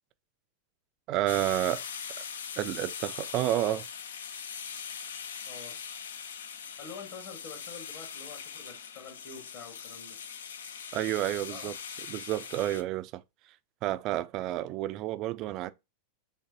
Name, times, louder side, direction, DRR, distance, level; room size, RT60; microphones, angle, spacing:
voice 1, 1.1-1.8 2.2-2.3 2.6-3.8 10.9-11.7 12.1-13.2 13.8-15.7, right 14 dB, 40° right, 0.3 m, -30 dB
sound 1, 1.3-12.8, left 7 dB, 65° left, 0.4 m, -41 dB
voice 2, 5.5-5.8 6.8-10.2 11.5-11.7, left 5 dB, 40° left, 1.5 m, -46 dB
5.3 x 2.2 x 2.7 m
figure-of-eight pair, 90°, 0 cm